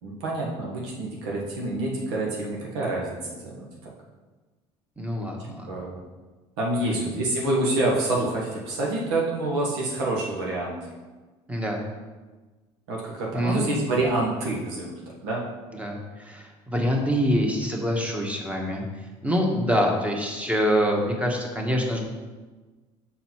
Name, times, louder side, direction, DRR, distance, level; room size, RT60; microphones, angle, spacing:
voice 1, 0.0-3.9 5.7-6.0 6.6-10.8 12.9-15.4, right 2 dB, 90° right, -2 dB, 1.4 m, -27 dB
voice 2, 5.0-5.7 6.8-6.9 11.5-11.8 13.3-13.8 15.7-18.8 19.2-22.0, equal, 10° right, 1 dB, 1.4 m, -25 dB
6.3 x 4.0 x 4.5 m, 1.3 s
supercardioid pair, 85°, 13 cm